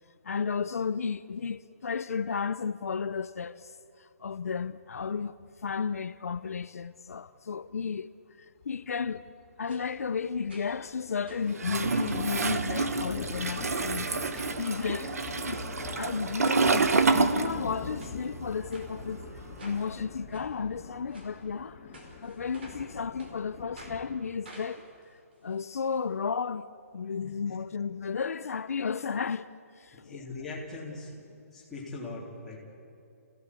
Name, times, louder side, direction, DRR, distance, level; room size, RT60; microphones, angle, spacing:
voice 1, 0.2-5.4 5.6-8.1 8.4-9.2 9.6-19.2 19.6-21.8 22.2-24.9 25.4-26.7 26.9-29.5 29.8-30.2, left 6 dB, 75° left, 0.7 m, -33 dB
Thunder, 8.6-8.8 9.1-9.2 9.4-11.0 11.2-24.2, left 4 dB, 25° left, 2.8 m, -44 dB
sound 1, 9.7-9.8 10.5-10.9 11.3-12.3 12.8-13.1 13.5-13.7 14.3-14.6 15.0-15.3 15.9-16.1 16.5-16.7 17.1-17.6 18.0-18.2 18.7-18.9 19.6-19.8 20.3-20.5 21.1-21.3 21.9-22.9 23.2-23.3 23.8-24.0 24.4-26.0 26.3-26.4 26.6-26.7, right 2 dB, 40° right, 4.7 m, -50 dB
Toilet flush, 11.6-18.0 18.3-19.9, right 4 dB, 80° right, 1.4 m, -28 dB
voice 2, 30.0-31.2 31.5-32.6, left 3 dB, ahead, 3.3 m, -40 dB
28.5 x 16.5 x 8.4 m
hypercardioid pair, 180°, 8 cm